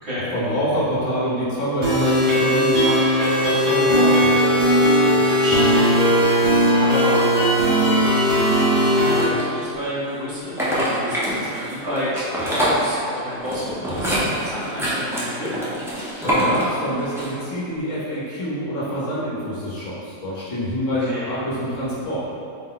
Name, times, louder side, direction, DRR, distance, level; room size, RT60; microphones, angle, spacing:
voice 1, 0.3-3.0 3.4-4.3 16.1-22.2, equal, 65° left, -8 dB, 1.3 m, -26 dB
sound 1, 1.8-9.2, equal, 35° right, 0.9 m, -17 dB
voice 2, 5.1-6.5 6.8-7.3 7.6-8.2 8.8-15.5 21.0-21.4, left 1 dB, 55° right, -10 dB, 1.2 m, -30 dB
sound 2, 8.9-9.8 10.4-17.5, equal, 5° right, 0.3 m, -25 dB
4.2 x 2.2 x 3.8 m, 2.4 s
omnidirectional pair, 1.4 m